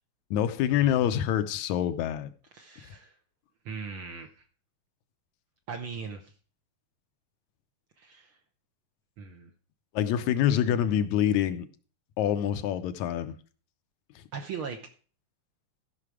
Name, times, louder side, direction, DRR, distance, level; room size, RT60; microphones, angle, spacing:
voice 1, 0.3-2.3 9.9-11.7 12.2-13.4, left 10 dB, 80° left, 2.0 m, -26 dB
voice 2, 2.5-3.1 3.6-4.4 5.7-6.3 8.0-8.4 9.2-9.5 14.3-14.8, right 5 dB, 65° right, 1.4 m, -39 dB
14.5 x 5.8 x 4.8 m
omnidirectional pair, 3.4 m